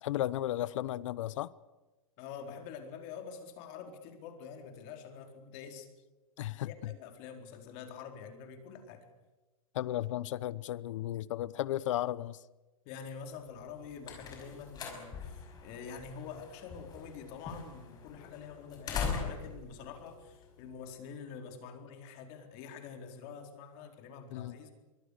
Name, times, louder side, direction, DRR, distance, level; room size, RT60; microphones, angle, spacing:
voice 1, 0.0-1.5 6.4-6.9 9.7-12.4 24.3-24.5, left 13 dB, 65° left, 0.9 m, -34 dB
voice 2, 2.2-5.9 6.6-9.1 12.8-24.7, left 6 dB, 40° left, 4.3 m, -46 dB
sound 1, 13.6-21.0, left 6 dB, 20° left, 5.5 m, -42 dB
25.5 x 24.0 x 6.7 m
supercardioid pair, 155°, 18 cm